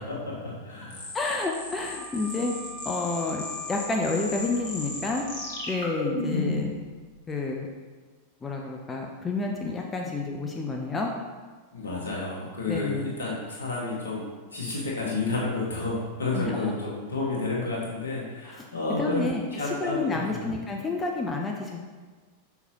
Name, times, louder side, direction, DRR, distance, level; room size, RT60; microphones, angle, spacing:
voice 1, 0.0-1.1 11.7-19.2 19.5-20.5, left 3 dB, 70° left, -4 dB, 1.6 m, -31 dB
sound 1, 0.9-6.7, left 3 dB, 50° left, 1.7 m, -35 dB
voice 2, 1.1-2.5 2.8-5.3 5.7-6.7 7.3-7.7 8.4-11.1 12.7-13.0 16.3-16.7 18.4-18.5 19.0-19.4 19.8-21.8, left 3 dB, 15° left, 0 dB, 0.6 m, -29 dB
Wind instrument woodwind instrument, 1.7-6.0, right 1 dB, 25° right, 1.0 m, -45 dB
5.8 x 5.7 x 2.9 m, 1.4 s
figure-of-eight pair, 90°, 0 cm